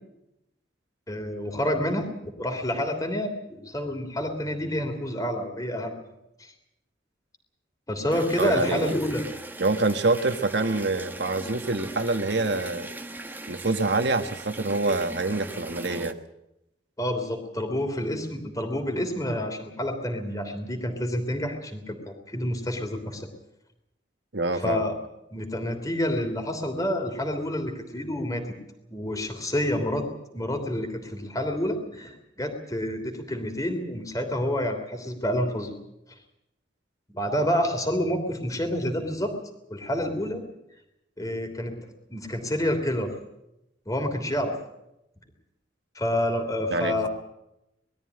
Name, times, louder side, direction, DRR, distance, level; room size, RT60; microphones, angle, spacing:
voice 1, 1.1-2.1 2.4-5.9 6.4-6.5 7.9-9.2 17.0-23.3 24.5-25.0 25.3-28.5 28.9-30.1 30.3-35.7 37.1-39.3 39.7-40.4 41.2-41.7 42.1-43.1 43.8-44.5 45.9-47.1, left 1 dB, 20° left, 5 dB, 3.2 m, -28 dB
sound 1, 8.1-16.1, right 2 dB, 10° right, 1.2 m, -39 dB
voice 2, 8.4-8.9 9.6-12.9 13.5-16.1 24.3-24.9 46.7-47.1, right 3 dB, 65° right, 7 dB, 1.5 m, -26 dB
21.0 x 13.5 x 9.8 m, 0.87 s
head